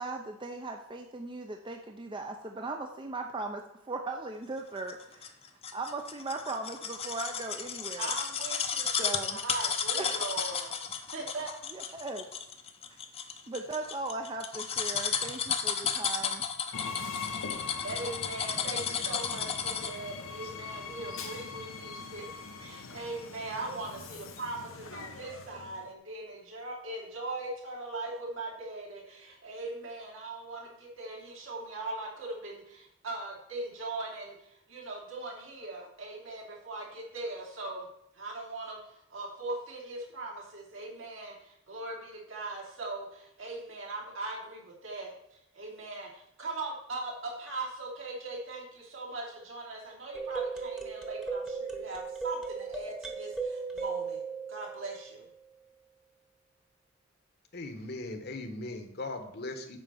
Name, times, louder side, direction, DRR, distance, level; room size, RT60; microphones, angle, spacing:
voice 1, 0.0-5.3 5.7-8.1 9.0-9.4 10.0-10.3 10.6-10.7 11.7-12.3 13.5-16.4, right 3 dB, 25° right, 4 dB, 0.6 m, -38 dB
sound 1, 4.9-20.1 20.4-20.5, left 6 dB, 30° left, 0.7 m, -33 dB
voice 2, 8.0-10.7 11.1-11.5 17.8-37.9 38.1-45.1 45.5-54.2 54.5-55.2, right 2 dB, 75° right, -3 dB, 3.2 m, -40 dB
Train, 16.7-25.9, left 5 dB, 90° left, 0.9 m, -42 dB
sound 2, 50.1-55.3, right 5 dB, 5° right, 1.1 m, -36 dB
voice 3, 57.5-59.8, left 2 dB, 50° left, 7 dB, 1.2 m, -39 dB
9.0 x 4.2 x 7.0 m, 0.77 s
head